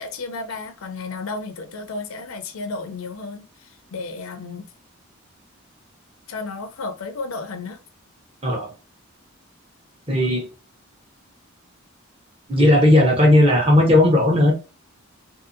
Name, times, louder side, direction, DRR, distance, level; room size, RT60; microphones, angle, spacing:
voice 1, 0.0-3.5 3.9-4.6 6.3-7.8, left 3 dB, 75° left, 0.5 m, -32 dB
voice 2, 8.4-8.7 10.1-10.5 12.5-14.5, left 1 dB, 25° right, 0.8 m, -16 dB
2.7 x 2.7 x 2.5 m
head